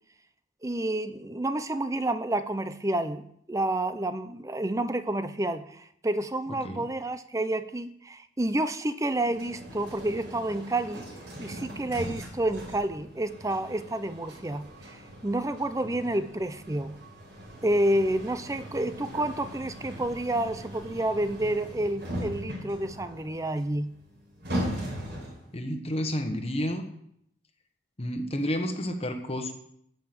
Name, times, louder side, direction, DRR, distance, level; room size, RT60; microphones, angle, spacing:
voice 1, 0.6-11.0 11.4-17.0 17.6-23.9, right 1 dB, 15° right, 0.6 m, -29 dB
sound 1, 9.1-25.5, equal, 55° right, 4.3 m, -39 dB
voice 2, 25.5-26.9 28.0-29.5, equal, 30° left, 1.2 m, -30 dB
14.5 x 6.0 x 7.8 m
head